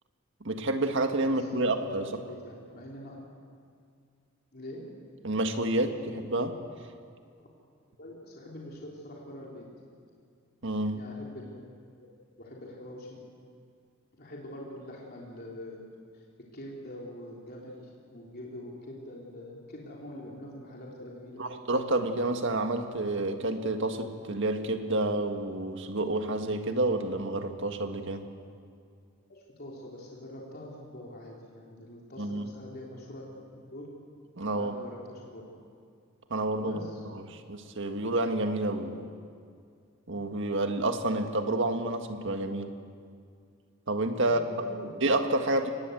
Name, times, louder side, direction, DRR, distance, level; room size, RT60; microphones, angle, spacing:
voice 1, 0.4-2.1 5.2-6.5 10.6-11.1 21.4-28.3 32.2-32.6 34.4-34.7 36.3-36.8 37.1-39.1 40.1-42.8 43.9-44.7 45.0-45.7, right 2 dB, 60° right, 6 dB, 1.8 m, -29 dB
voice 2, 1.3-3.2 4.5-5.0 7.4-7.5 8.0-9.7 10.9-11.7 12.4-13.2 14.2-21.5 29.3-33.2 33.7-33.9 34.5-35.4 36.6-37.0 44.2-44.9, left 1 dB, 50° left, -3 dB, 3.4 m, -44 dB
24.5 x 20.0 x 7.9 m, 2.3 s
head